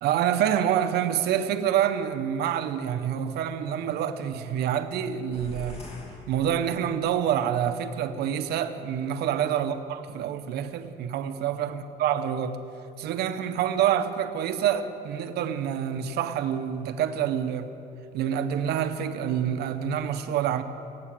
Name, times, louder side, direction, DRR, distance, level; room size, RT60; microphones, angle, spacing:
voice 1, 0.0-5.8 6.3-12.6 13.0-17.7 18.1-20.6, right 9 dB, 75° right, 0.8 m, -27 dB
sound 1, 5.3-7.2, left 1 dB, 35° left, 2.5 m, -43 dB
15.5 x 9.7 x 7.4 m
cardioid pair, 110°, 17 cm